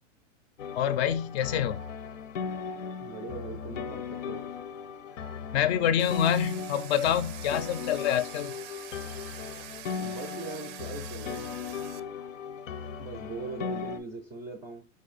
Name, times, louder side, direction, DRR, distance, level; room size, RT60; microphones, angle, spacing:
sound 1, 0.6-14.0, left 6 dB, 90° left, 0.7 m, -37 dB
voice 1, 0.7-1.8 5.5-8.5, left 9 dB, 55° left, 0.6 m, -26 dB
voice 2, 3.0-4.4 10.0-11.6 13.0-14.8, right 3 dB, 10° right, 0.3 m, -40 dB
Domestic sounds home sounds, 6.0-12.0, right 13 dB, 70° right, 0.5 m, -46 dB
4.7 x 2.6 x 4.0 m
supercardioid pair, 140°, 38 cm